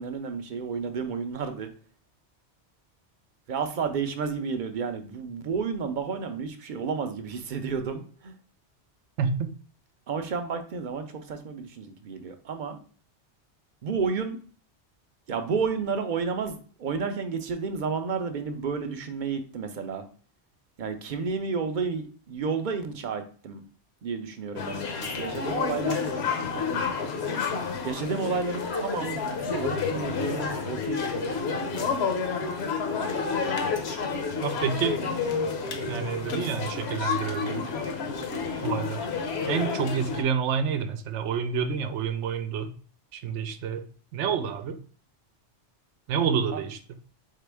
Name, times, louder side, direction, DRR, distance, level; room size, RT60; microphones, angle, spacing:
voice 1, 0.0-1.7 3.5-8.4 10.1-12.8 13.8-14.4 15.3-20.1 20.8-23.6 24.0-26.0 27.8-31.9 46.5-46.6, right 5 dB, 55° right, 7 dB, 0.6 m, -31 dB
voice 2, 9.2-9.5 34.4-35.0 35.9-37.6 38.6-39.1 39.5-42.7 43.1-43.9 44.1-44.8 46.1-46.8, right 7 dB, 85° right, 9 dB, 0.9 m, -28 dB
sound 1, 24.6-40.2, left 5 dB, 70° left, 1.0 m, -30 dB
4.1 x 3.7 x 3.4 m, 0.42 s
omnidirectional pair, 1.2 m